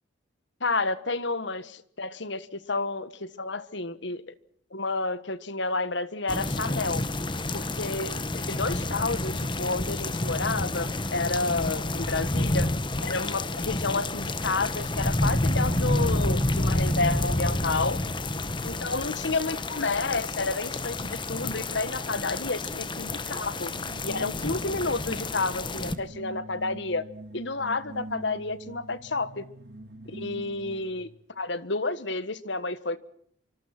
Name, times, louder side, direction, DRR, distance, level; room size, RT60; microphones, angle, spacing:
voice 1, 0.6-4.3 4.7-7.0 7.5-12.7 13.0-18.0 18.6-23.7 24.0-27.0 27.3-29.4 30.1-31.1 31.4-33.0, left 3 dB, 65° left, 15 dB, 1.5 m, -30 dB
sound 1, 6.3-26.0, left 2 dB, 25° left, 1.3 m, -29 dB
sound 2, 22.6-31.1, right 1 dB, 55° right, 6.5 m, -45 dB
26.5 x 25.0 x 6.0 m, 0.64 s
head